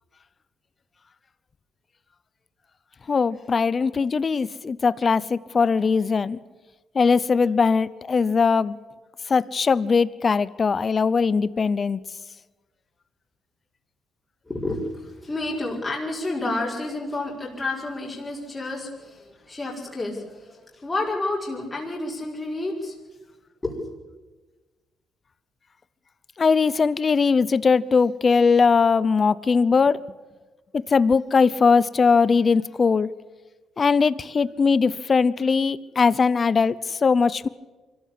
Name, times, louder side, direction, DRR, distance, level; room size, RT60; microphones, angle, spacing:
voice 1, 3.1-6.4 6.9-8.8 9.3-12.0 26.4-30.0 30.9-33.1 33.8-37.5, left 5 dB, 40° left, 18 dB, 0.8 m, -20 dB
voice 2, 14.5-23.0 23.6-23.9, left 2 dB, 20° left, -3 dB, 5.4 m, -30 dB
24.5 x 14.5 x 8.5 m, 1.3 s
cardioid pair, 90°, 0 cm